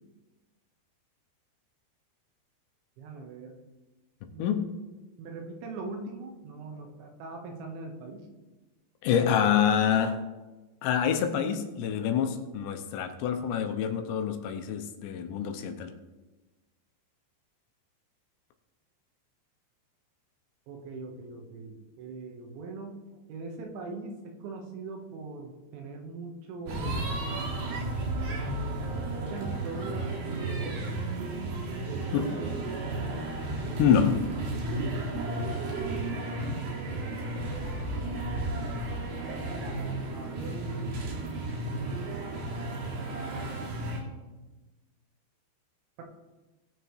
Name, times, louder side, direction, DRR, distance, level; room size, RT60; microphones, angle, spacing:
voice 1, 3.0-3.6 4.3-4.7 5.2-8.2 20.7-23.0 23.3-27.2 28.2-31.1 31.9-33.3 36.7-37.9 40.1-41.0 46.0-46.1, right 3 dB, 80° right, 2 dB, 3.6 m, -41 dB
voice 2, 4.4-4.7 9.0-10.2 10.8-15.9 32.1-32.2 33.8-34.3, left 8 dB, 85° left, 6 dB, 2.9 m, -26 dB
sound 1, 26.7-44.0, right 2 dB, 60° right, 3.4 m, -33 dB
19.0 x 6.9 x 3.2 m, 1.2 s
omnidirectional pair, 5.2 m